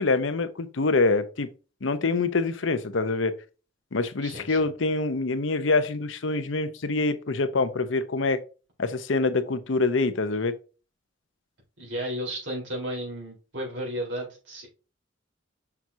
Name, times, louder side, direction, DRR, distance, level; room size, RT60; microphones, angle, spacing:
voice 1, 0.0-1.5 1.8-3.3 3.9-8.4 8.8-10.5, left 3 dB, 85° left, 0.8 m, -25 dB
voice 2, 4.2-4.6 11.8-14.7, equal, 70° right, 3.8 m, -33 dB
6.1 x 5.9 x 2.7 m
head